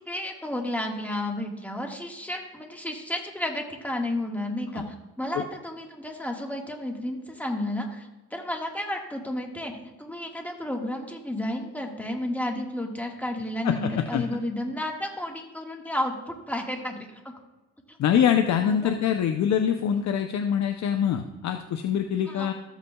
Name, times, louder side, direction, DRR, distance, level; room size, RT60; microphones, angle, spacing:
voice 1, 0.0-4.8 5.2-17.2 18.7-18.9 22.3-22.5, left 1 dB, 5° left, 1 dB, 1.6 m, -32 dB
voice 2, 13.6-14.2 18.0-22.5, left 8 dB, 65° left, 6 dB, 0.7 m, -24 dB
14.0 x 8.1 x 2.3 m, 1.1 s
cardioid pair, 90°, 30 cm